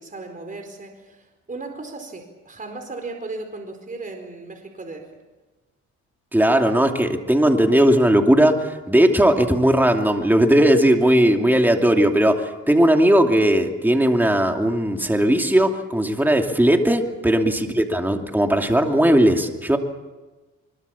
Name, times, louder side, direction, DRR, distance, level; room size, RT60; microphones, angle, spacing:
voice 1, 0.0-5.1, right 3 dB, 25° right, 4 dB, 4.5 m, -36 dB
voice 2, 6.3-19.8, right 1 dB, 5° right, 3 dB, 2.8 m, -18 dB
24.5 x 22.5 x 7.2 m, 1.2 s
cardioid pair, 90°, 30 cm